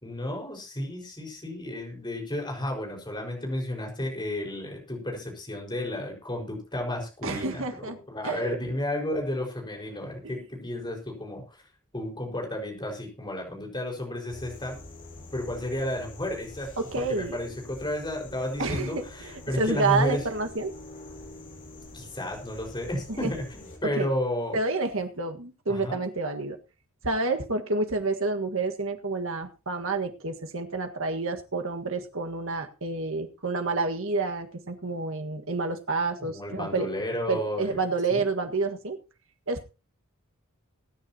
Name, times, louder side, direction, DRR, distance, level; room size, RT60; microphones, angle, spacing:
voice 1, 0.0-11.6 11.9-14.8 15.3-20.2 21.9-24.6 25.7-26.0 36.2-37.8 38.1-38.2, left 1 dB, 20° left, 1 dB, 5.1 m, -32 dB
voice 2, 7.2-8.0 8.2-8.6 10.2-10.3 16.8-17.4 18.6-20.7 23.1-23.3 23.9-24.1 24.5-26.6 27.0-36.9 37.3-39.0 39.5-39.6, right 3 dB, 65° right, 5 dB, 1.7 m, -29 dB
sound 1, 14.3-23.8, left 2 dB, 40° left, 4.7 m, -46 dB
22.0 x 10.0 x 2.9 m, 0.30 s
head